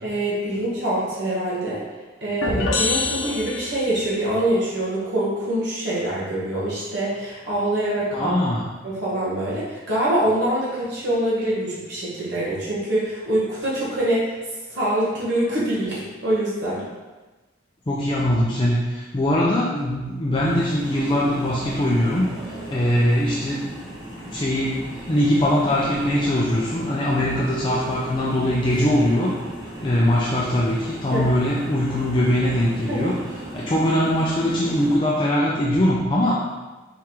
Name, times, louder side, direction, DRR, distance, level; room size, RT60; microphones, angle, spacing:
voice 1, 0.0-1.8 2.2-8.3 8.8-14.3 14.7-16.8 31.1-31.2 32.9-33.1, right 1 dB, 60° right, -7 dB, 1.1 m, -24 dB
sound 1, 2.4-4.1, left 3 dB, 65° left, 0.7 m, -25 dB
voice 2, 8.1-8.7 17.9-22.3 22.7-23.6 24.3-29.4 29.8-33.2 33.5-36.3, left 1 dB, 25° left, -5 dB, 0.4 m, -21 dB
sound 2, 20.4-35.0, right 1 dB, 20° right, 0.7 m, -36 dB
4.4 x 3.7 x 3.0 m, 1.2 s
head